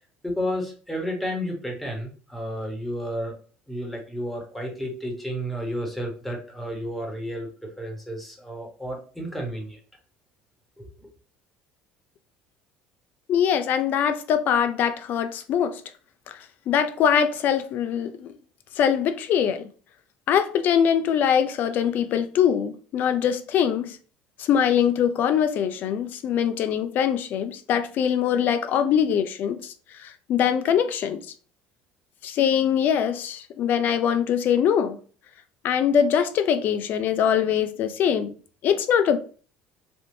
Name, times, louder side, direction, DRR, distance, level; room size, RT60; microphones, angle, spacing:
voice 1, 0.2-3.3 3.7-9.8 10.8-11.1, equal, 5° left, 1.2 m, -32 dB
voice 2, 13.3-15.8 16.3-16.4 16.7-18.3 18.8-19.7 20.3-24.0 24.4-31.2 32.2-35.0 35.6-38.3 38.6-39.2, left 8 dB, 55° left, 0.4 m, -23 dB
3.5 x 2.6 x 2.7 m
supercardioid pair, 95°, 4 cm